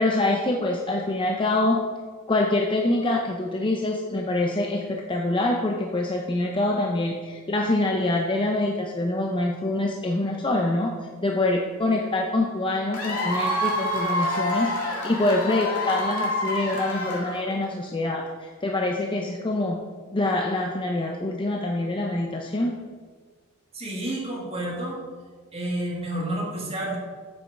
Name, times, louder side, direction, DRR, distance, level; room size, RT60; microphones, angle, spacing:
voice 1, 0.0-1.8 2.3-10.9 11.2-19.8 20.1-22.8, left 2 dB, 25° left, 0 dB, 0.6 m, -25 dB
Cheering / Applause / Crowd, 12.9-17.6, left 1 dB, 90° left, 2.0 m, -27 dB
voice 2, 23.7-25.0 25.5-27.0, right 1 dB, 30° right, -3 dB, 1.8 m, -30 dB
7.6 x 7.0 x 4.5 m, 1.5 s
head